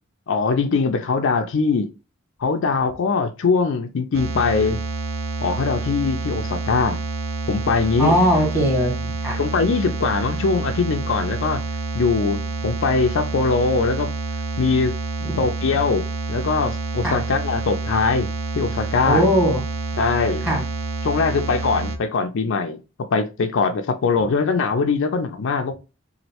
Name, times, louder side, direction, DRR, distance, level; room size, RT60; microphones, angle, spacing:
voice 1, 0.3-1.9 2.4-4.8 5.4-7.0 7.5-8.1 9.4-11.6 11.9-14.1 14.6-14.9 15.4-16.0 16.3-18.3 18.5-19.2 20.0-20.5 21.0-22.8 23.1-25.8, left 4 dB, 60° left, 0.4 m, -21 dB
sound 1, 4.1-22.0, right 3 dB, 70° right, 0.6 m, -28 dB
voice 2, 8.0-9.4 15.2-15.4 17.0-17.2 19.0-19.6 20.4-20.6, equal, 10° right, 1.6 m, -20 dB
3.0 x 2.5 x 2.8 m
head